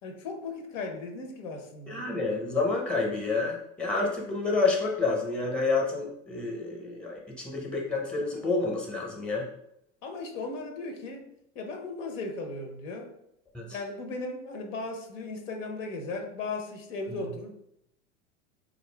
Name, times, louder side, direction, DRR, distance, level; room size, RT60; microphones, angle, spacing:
voice 1, 0.0-2.0 10.0-11.3 11.5-13.1 13.7-17.5, left 3 dB, 75° left, 4 dB, 0.9 m, -37 dB
voice 2, 1.9-9.5 13.5-13.7, left 3 dB, 5° left, 0 dB, 0.8 m, -29 dB
4.1 x 2.5 x 3.3 m, 0.79 s
hypercardioid pair, 100°, 39 cm